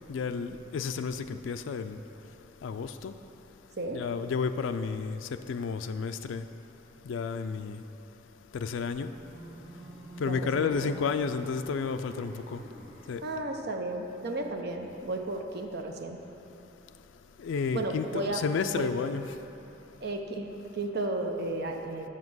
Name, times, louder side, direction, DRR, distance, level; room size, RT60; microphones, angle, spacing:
voice 1, 0.1-2.0 2.6-3.1 3.9-6.5 7.0-7.8 8.5-9.1 10.2-12.6 13.1-13.2 17.4-19.3, left 5 dB, 75° left, 0.3 m, -31 dB
sound 1, 9.0-13.7, right 1 dB, 5° left, 2.1 m, -48 dB
voice 2, 10.2-10.9 13.2-16.2 17.7-18.4 18.7-18.9 20.0-22.1, right 2 dB, 55° right, 0.7 m, -34 dB
7.4 x 5.8 x 6.1 m
head